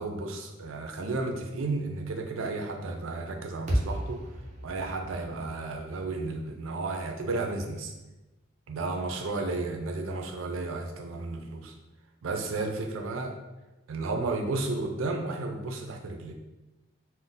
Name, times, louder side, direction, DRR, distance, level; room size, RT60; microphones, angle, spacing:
voice 1, 0.0-4.3 4.6-7.9 8.7-11.7 12.2-13.3 13.9-16.3, right 3 dB, 90° right, 4 dB, 0.4 m, -33 dB
sound 1, 3.7-8.0, right 1 dB, 40° right, 0.6 m, -35 dB
2.6 x 2.1 x 3.8 m, 1.0 s
head